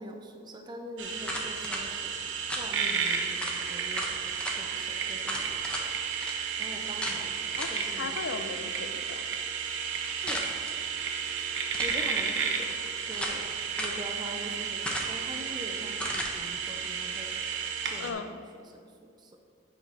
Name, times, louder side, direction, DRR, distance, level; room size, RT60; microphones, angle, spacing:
voice 1, 0.0-2.2 2.6-5.9 6.6-7.3 7.7-8.2 10.2-10.5 11.8-12.8 13.1-13.5 13.8-17.3 17.9-19.4, equal, 20° right, 3 dB, 0.6 m, -44 dB
sound 1, 1.0-18.1, right 6 dB, 65° right, 0.9 m, -33 dB
sound 2, 1.2-1.8 2.5-2.7 3.1-3.2 3.4-3.6 3.9-4.6 5.2-5.9 6.2-6.3 7.0-7.2 7.6-7.9 10.3-10.7 11.6-12.0 12.7-13.4 13.8-14.0 14.8-15.3 16.0-16.3, left 1 dB, 5° left, 0.9 m, -35 dB
voice 2, 7.6-9.3 18.0-18.4, left 4 dB, 70° left, 9 dB, 0.5 m, -37 dB
8.6 x 5.9 x 4.0 m, 2.1 s
head